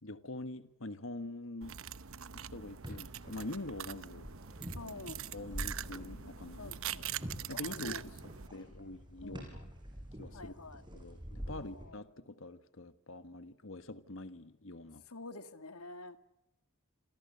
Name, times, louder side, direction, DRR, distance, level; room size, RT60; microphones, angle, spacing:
voice 1, 0.0-1.8 2.3-4.3 5.3-6.7 7.5-9.7 10.2-10.5 10.9-15.0, left 2 dB, 60° left, 11 dB, 1.4 m, -45 dB
sound 1, 1.6-8.5, right 9 dB, 65° right, 0.9 m, -43 dB
sound 2, 2.8-11.9, equal, 20° right, 6.4 m, -47 dB
voice 2, 4.8-5.2 6.6-7.2 7.5-8.0 8.5-8.7 9.2-9.5 10.3-10.8 11.5-12.0 15.1-16.2, left 2 dB, 90° left, 9 dB, 2.0 m, -48 dB
27.5 x 27.5 x 7.0 m, 0.94 s
head